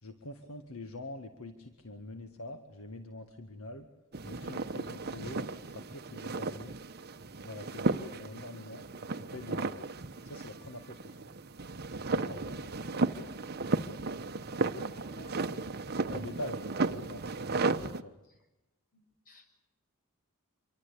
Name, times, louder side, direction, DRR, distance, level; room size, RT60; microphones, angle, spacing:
voice 1, 0.0-3.9 4.2-6.8 7.4-8.8 9.1-9.9 10.2-11.2 12.1-12.6 16.0-16.6 16.9-17.3 17.5-17.7 18.0-18.1, left 2 dB, 70° left, 7 dB, 1.8 m, -45 dB
sound 1, 4.1-18.0, right 3 dB, 45° right, 1.0 m, -35 dB
voice 2, 12.4-13.4 14.7-15.4 18.2-18.5 18.9-19.5, left 1 dB, 40° left, 5 dB, 7.2 m, -56 dB
26.0 x 23.5 x 8.5 m, 0.99 s
head